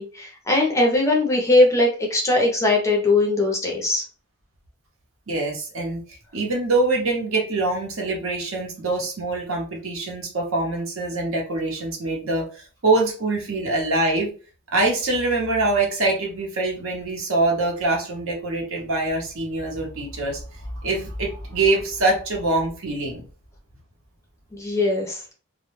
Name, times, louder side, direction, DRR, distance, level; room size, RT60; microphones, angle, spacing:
voice 1, 0.0-4.0 24.5-25.3, left 2 dB, 15° left, 0 dB, 0.5 m, -20 dB
voice 2, 5.3-6.0 6.3-14.3 14.7-20.4 20.7-23.2, right 2 dB, 65° right, 0 dB, 0.8 m, -24 dB
2.1 x 2.0 x 3.0 m, 0.38 s
head